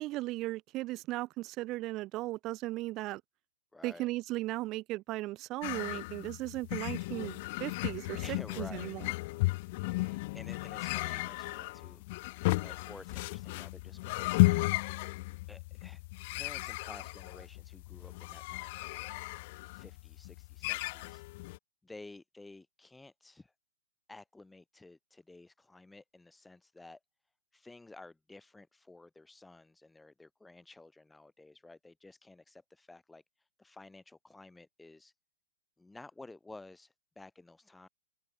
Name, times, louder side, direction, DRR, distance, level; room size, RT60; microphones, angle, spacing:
voice 1, 0.0-3.2 3.8-9.1, right 18 dB, 25° right, 2.2 m, -37 dB
voice 2, 3.7-4.1 8.2-8.9 9.8-12.3 12.6-14.7 15.5-16.0 16.3-19.1 19.7-21.2 21.8-23.5 24.1-27.0 27.5-35.1 35.8-37.9, left 2 dB, 5° left, 2.9 m, -53 dB
sound 1, 5.6-21.6, left 22 dB, 40° left, 3.6 m, -34 dB
hypercardioid pair, 150°, 0 cm